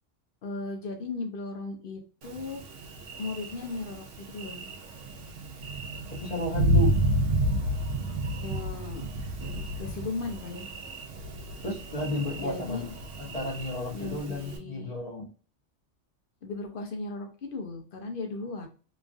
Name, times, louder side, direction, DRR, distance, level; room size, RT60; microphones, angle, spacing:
voice 1, 0.4-2.6 3.2-4.7 8.4-9.2 9.4-10.7 12.4-12.9 13.9-14.9 16.4-18.7, left 3 dB, 60° left, 3 dB, 0.7 m, -37 dB
Thunder, 2.2-14.6, right 1 dB, 85° right, 1.0 m, -31 dB
voice 2, 6.1-7.0 11.6-15.3, left 1 dB, 35° left, -4 dB, 1.0 m, -33 dB
3.0 x 2.3 x 2.5 m, 0.37 s
omnidirectional pair, 1.2 m